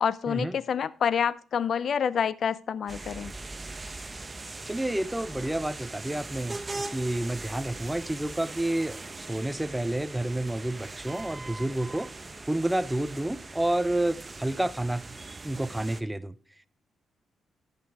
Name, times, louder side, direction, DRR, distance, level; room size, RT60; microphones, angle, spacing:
voice 1, 0.0-3.3, left 7 dB, 60° left, 0.5 m, -27 dB
sound 1, 2.9-16.0, right 3 dB, 25° right, 0.9 m, -40 dB
voice 2, 4.7-12.1 12.4-15.0 15.4-16.3, right 1 dB, 10° right, 0.6 m, -29 dB
14.5 x 6.8 x 3.4 m
cardioid pair, 80°, 0 cm